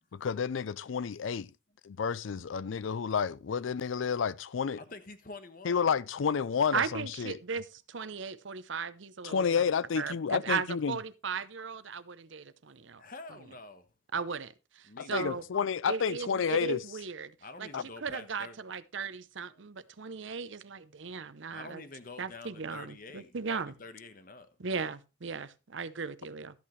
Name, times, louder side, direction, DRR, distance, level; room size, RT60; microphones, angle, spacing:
voice 1, 0.1-1.5 1.8-4.8 5.6-7.3 9.2-11.0 15.0-16.8 17.7-17.8, left 6 dB, 85° left, 0.4 m, -30 dB
voice 2, 4.8-6.0 12.8-13.9 14.9-15.5 17.4-18.6 19.5-19.6 21.5-24.5, left 3 dB, 45° left, 1.2 m, -47 dB
voice 3, 6.7-9.6 9.9-13.0 14.1-15.4 15.9-17.3 17.6-17.7 18.0-21.8 22.2-23.7 24.6-26.6, right 5 dB, 75° right, 0.7 m, -37 dB
13.0 x 8.5 x 3.2 m
head